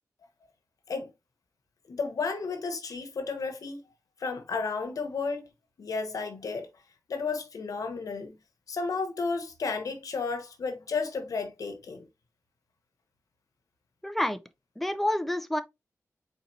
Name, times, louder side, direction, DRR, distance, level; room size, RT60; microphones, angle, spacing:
voice 1, 1.9-3.8 4.2-5.5 5.8-6.7 7.1-8.4 8.7-12.0, left 4 dB, 90° left, 1.0 m, -32 dB
voice 2, 14.0-14.4 14.8-15.6, left 1 dB, 5° left, 0.5 m, -28 dB
4.2 x 4.1 x 2.6 m
wide cardioid pair, 85°, 6 cm